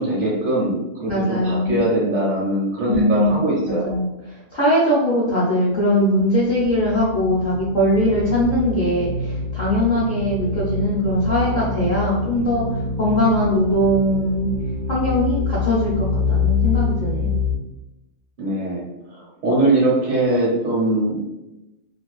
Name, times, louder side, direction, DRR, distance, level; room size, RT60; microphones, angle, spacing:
voice 1, 0.0-3.9 18.4-18.8 19.4-21.3, right 1 dB, 50° right, -6 dB, 0.6 m, -21 dB
voice 2, 1.0-1.9 2.9-14.5 14.9-17.4, equal, 55° left, -8 dB, 0.5 m, -21 dB
sound 1, 6.3-17.6, left 4 dB, 70° left, 0.9 m, -25 dB
2.5 x 2.2 x 2.3 m, 0.94 s
omnidirectional pair, 1.4 m